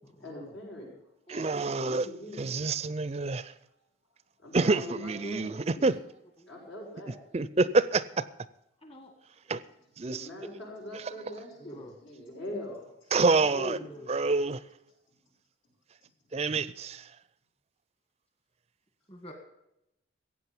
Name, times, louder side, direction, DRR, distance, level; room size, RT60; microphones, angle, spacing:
voice 1, 0.2-0.9 1.8-2.4 3.2-3.3 4.4-5.9 6.5-7.2 10.0-12.9 13.1-13.9, left 1 dB, 80° left, 6.5 m, -41 dB
voice 2, 1.3-2.1 2.4-3.5 4.5-6.0 7.3-8.2 9.5-9.6 10.0-10.3 10.9-11.0 13.1-13.8 14.1-14.6 16.3-17.1, right 3 dB, 35° right, 0.4 m, -27 dB
voice 3, 11.6-11.9 13.8-14.1 19.1-19.3, equal, 30° left, 1.7 m, -47 dB
15.5 x 8.5 x 7.1 m
head